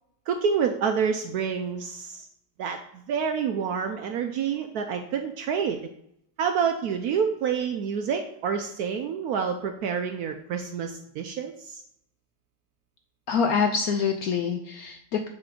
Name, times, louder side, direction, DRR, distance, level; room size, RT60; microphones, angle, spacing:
voice 1, 0.3-2.3 2.6-5.8 6.4-11.8, right 6 dB, 75° right, 6 dB, 0.9 m, -28 dB
voice 2, 13.3-15.3, left 6 dB, 75° left, 4 dB, 0.8 m, -25 dB
7.7 x 4.2 x 3.8 m, 0.75 s
omnidirectional pair, 2.1 m